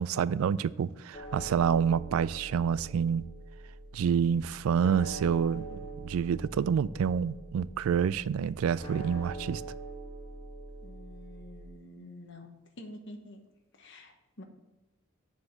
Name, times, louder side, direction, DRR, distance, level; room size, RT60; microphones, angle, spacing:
voice 1, 0.0-3.2 3.9-9.6, right 7 dB, 80° right, 0.3 m, -28 dB
sound 1, 1.1-11.7, right 2 dB, 25° left, 1.2 m, -44 dB
voice 2, 10.8-12.5 12.8-13.4 13.7-14.4, left 1 dB, 55° left, 1.1 m, -48 dB
7.1 x 4.5 x 6.3 m
head